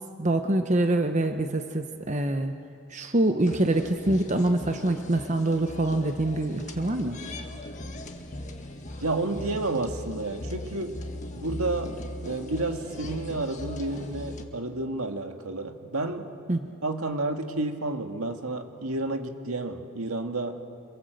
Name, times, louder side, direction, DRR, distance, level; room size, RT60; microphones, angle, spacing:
voice 1, 0.2-2.5 2.9-7.2 16.5-16.6, right 1 dB, 30° right, 6 dB, 0.9 m, -25 dB
sound 1, 3.4-14.4, left 1 dB, 35° left, 1.7 m, -39 dB
voice 2, 9.0-11.0 11.3-16.3 16.8-20.6, right 2 dB, 80° right, 5 dB, 1.8 m, -31 dB
26.5 x 23.0 x 7.9 m, 2.4 s
head